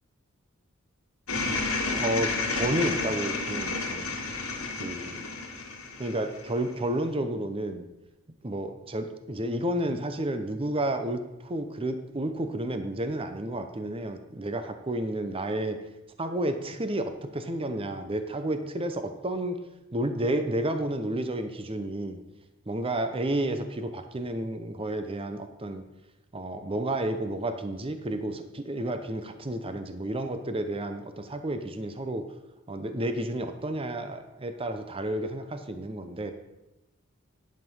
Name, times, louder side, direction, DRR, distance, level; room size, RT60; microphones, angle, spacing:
sound 1, 1.3-6.7, left 3 dB, 80° left, 1.9 m, -31 dB
voice 1, 2.0-4.1 4.8-5.3 6.0-7.8 8.4-15.8 16.2-19.6 19.9-22.2 22.7-25.8 26.3-32.2 32.7-36.3, right 1 dB, 25° right, 8 dB, 0.7 m, -31 dB
11.0 x 5.3 x 5.5 m, 0.96 s
head